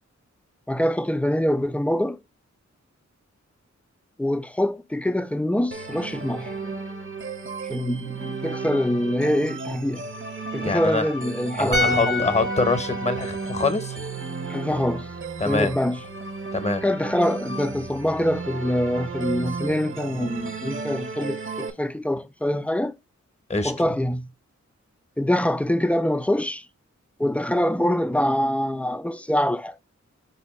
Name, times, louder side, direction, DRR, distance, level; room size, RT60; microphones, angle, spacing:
voice 1, 0.7-2.2 4.2-6.6 7.6-10.1 10.5-12.3 14.5-15.1 15.4-16.0 16.8-22.9 23.6-24.3 25.2-26.7 27.2-29.8, left 1 dB, 5° left, 0.3 m, -24 dB
sound 1, 5.7-21.7, right 4 dB, 45° right, 0.8 m, -34 dB
voice 2, 10.6-11.1 11.6-14.1 15.4-15.7 16.5-16.8 23.5-23.7, left 3 dB, 25° left, 0.8 m, -24 dB
sound 2, 11.7-14.9 15.2-15.4, left 2 dB, 85° right, 1.0 m, -29 dB
4.2 x 2.7 x 4.1 m
cardioid pair, 45°, 29 cm